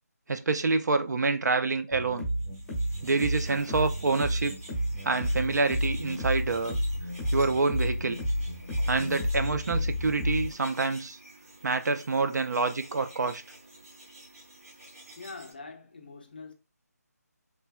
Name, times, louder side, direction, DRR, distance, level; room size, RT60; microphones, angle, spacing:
voice 1, 0.3-2.3 3.0-4.5 5.0-6.8 7.3-8.2 8.9-11.2 11.6-13.4, right 3 dB, 80° right, 0.4 m, -27 dB
sound 1, 1.9-10.5, equal, 5° left, 0.8 m, -31 dB
sound 2, 2.3-15.5, right 1 dB, 55° right, 1.0 m, -50 dB
voice 2, 15.2-16.5, left 4 dB, 35° left, 0.4 m, -44 dB
3.2 x 2.2 x 2.3 m
figure-of-eight pair, 175°, 9 cm